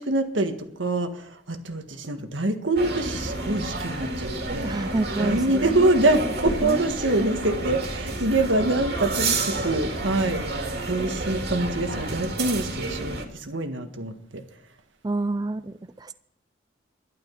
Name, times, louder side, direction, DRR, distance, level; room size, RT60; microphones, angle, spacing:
voice 1, 0.0-4.8 5.2-14.4, right 2 dB, 85° right, 6 dB, 1.7 m, -25 dB
sound 1, 2.8-13.3, right 2 dB, 55° right, 2.5 m, -30 dB
voice 2, 4.6-6.0 6.2-6.3 6.6-6.9 15.0-16.1, right 2 dB, 20° right, 11 dB, 0.4 m, -29 dB
12.0 x 11.5 x 5.9 m, 0.76 s
head